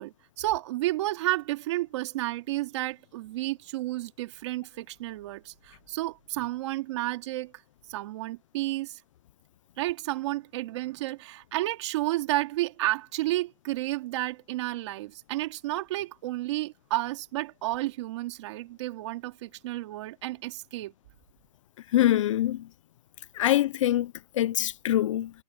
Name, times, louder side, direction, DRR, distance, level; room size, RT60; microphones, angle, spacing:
voice 1, 0.0-7.5 7.9-9.0 9.8-20.9, right 17 dB, 45° right, 3.0 m, -31 dB
voice 2, 21.9-22.6 23.4-25.3, left 13 dB, 50° left, 0.5 m, -24 dB
hypercardioid pair, 170°, 21 cm